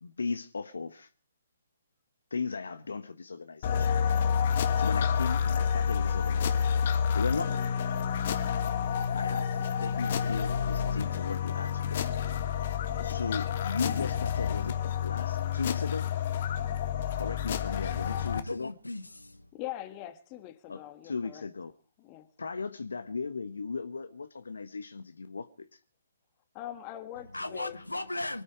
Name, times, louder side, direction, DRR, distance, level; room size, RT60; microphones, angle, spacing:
voice 1, 0.0-1.1 2.3-4.0 4.8-7.6 9.1-12.0 13.0-16.1 17.2-18.7 20.7-21.7 22.4-25.5 27.7-27.8, left 4 dB, 65° left, 1.1 m, -37 dB
sound 1, 3.6-18.4, left 7 dB, 40° left, 1.7 m, -29 dB
voice 2, 18.3-19.5 27.3-28.4, left 2 dB, 80° left, 1.4 m, -37 dB
voice 3, 19.5-21.5 22.0-22.3 26.5-27.8, left 14 dB, 25° left, 1.7 m, -42 dB
25.0 x 9.8 x 4.9 m
figure-of-eight pair, 135°, 0 cm